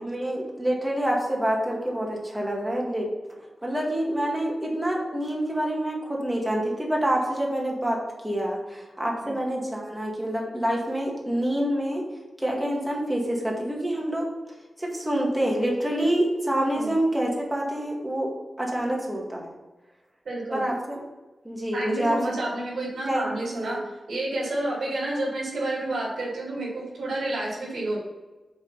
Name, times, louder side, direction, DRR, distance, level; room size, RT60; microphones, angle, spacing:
voice 1, 0.0-3.1 3.6-8.0 8.2-12.0 12.4-14.3 14.8-18.3 18.6-19.5 20.5-21.0 21.4-22.2 23.0-23.3 23.6-23.8, right 1 dB, 10° right, -2 dB, 1.8 m, -27 dB
voice 2, 20.2-20.7 21.7-23.8 24.1-28.0, right 1 dB, 70° right, -8 dB, 2.6 m, -30 dB
7.0 x 4.0 x 5.6 m, 1.1 s
wide cardioid pair, 100°, 0 cm